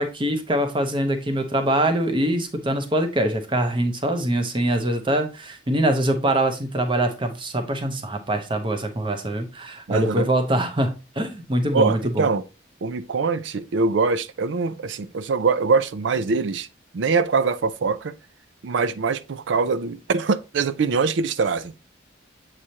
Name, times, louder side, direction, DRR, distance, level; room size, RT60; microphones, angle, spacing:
voice 1, 0.0-12.3, right 1 dB, 25° right, 0.8 m, -23 dB
voice 2, 9.9-10.3 11.7-12.4 12.8-16.7 16.9-18.1 18.6-21.7, right 4 dB, 75° right, 0.4 m, -23 dB
7.4 x 4.9 x 2.8 m
head